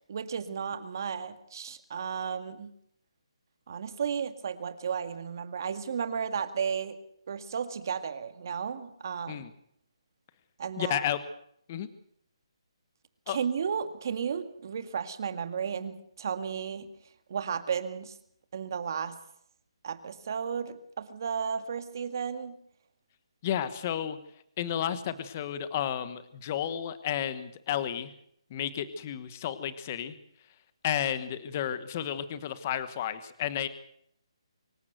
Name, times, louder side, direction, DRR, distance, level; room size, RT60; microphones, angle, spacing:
voice 1, 0.1-2.7 3.7-7.0 7.3-9.4 10.6-11.0 13.3-16.9 17.3-18.1 18.5-19.2 19.8-22.6, right 7 dB, 40° right, 11 dB, 1.9 m, -33 dB
voice 2, 10.8-11.2 11.7-11.9 13.3-13.4 23.4-24.2 24.6-28.1 28.5-30.1 30.8-33.7, left 10 dB, 20° left, 14 dB, 1.1 m, -32 dB
25.0 x 14.5 x 8.0 m, 0.69 s
hypercardioid pair, 175°, 3 cm